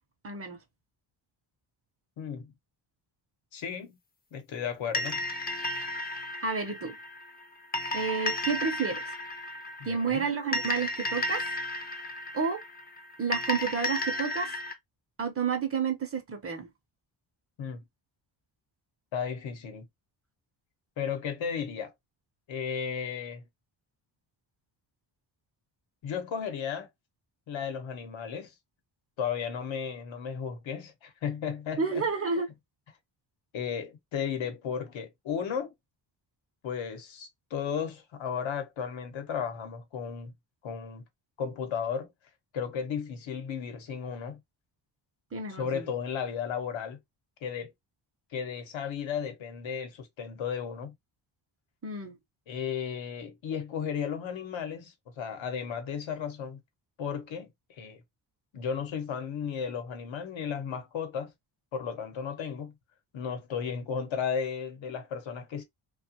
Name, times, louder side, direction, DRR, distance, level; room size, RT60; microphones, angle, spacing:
voice 1, 0.2-0.6 6.4-6.9 7.9-9.1 9.8-11.4 12.3-12.6 13.2-14.5 15.2-16.7 31.8-32.5 45.3-45.9 51.8-52.1, right 5 dB, 30° right, 0.6 m, -30 dB
voice 2, 2.2-2.5 3.5-4.0 4.3-5.2 9.8-10.3 17.6-17.8 19.1-19.9 21.0-21.9 22.5-23.4 26.0-26.9 27.5-28.5 29.2-32.0 33.5-35.7 36.6-40.3 40.6-41.0 41.4-42.1 42.5-44.4 45.6-47.0 47.4-47.7 48.3-50.9 52.5-56.6 57.0-58.0 58.5-61.3 61.7-62.7 63.1-65.6, left 7 dB, 80° left, 0.9 m, -34 dB
sound 1, 4.9-14.7, left 1 dB, 20° left, 0.5 m, -34 dB
2.8 x 2.2 x 2.7 m
wide cardioid pair, 145°, 46 cm